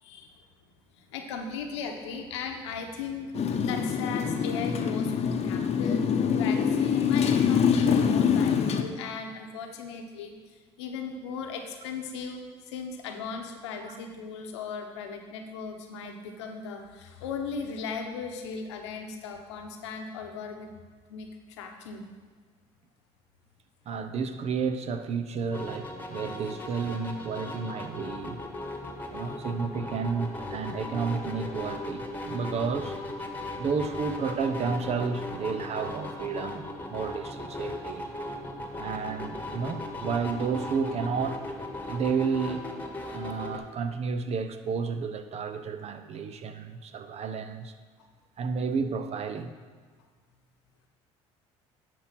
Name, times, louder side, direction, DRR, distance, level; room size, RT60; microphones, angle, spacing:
voice 1, 0.0-0.5 0.9-6.1 6.4-10.3 10.8-12.4 12.7-20.7 21.1-22.0, left 5 dB, 90° left, 4 dB, 1.0 m, -37 dB
Motorcycle, 3.3-8.8, left 7 dB, 50° left, 0.8 m, -25 dB
voice 2, 23.9-28.4 29.1-33.0 33.6-38.1 38.8-41.4 41.9-47.7 48.4-49.5, right 5 dB, 50° right, 9 dB, 0.8 m, -31 dB
sound 1, 25.5-43.6, left 2 dB, 15° left, 1.5 m, -38 dB
10.0 x 4.6 x 6.0 m, 1.5 s
hypercardioid pair, 65°, 14 cm